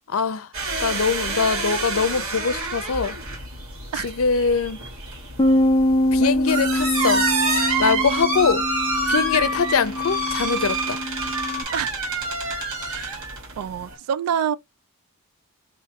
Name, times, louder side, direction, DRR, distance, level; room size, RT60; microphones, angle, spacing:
voice 1, 0.1-0.5 0.8-3.2 4.0-4.8 6.1-7.3 7.8-8.7 9.1-11.0, left 5 dB, 70° left, 0.6 m, -22 dB
sound 1, 0.5-14.0, right 2 dB, 65° right, 1.7 m, -27 dB
Bass guitar, 5.4-11.6, left 1 dB, 15° left, 0.4 m, -24 dB
voice 2, 12.9-13.2 13.6-14.6, right 8 dB, 85° right, 0.3 m, -27 dB
2.9 x 2.8 x 4.3 m
head